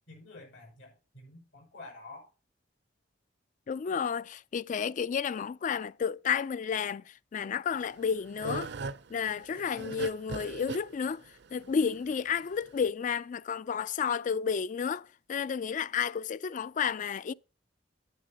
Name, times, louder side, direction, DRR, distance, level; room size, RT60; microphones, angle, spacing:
voice 1, 0.1-2.3, left 2 dB, 85° left, 5.1 m, -49 dB
voice 2, 3.7-7.0 7.3-8.7 9.1-11.2 11.5-17.3, left 6 dB, 45° left, 0.3 m, -31 dB
sound 1, 7.7-12.9, right 4 dB, 65° right, 0.5 m, -40 dB
10.5 x 9.3 x 2.8 m
head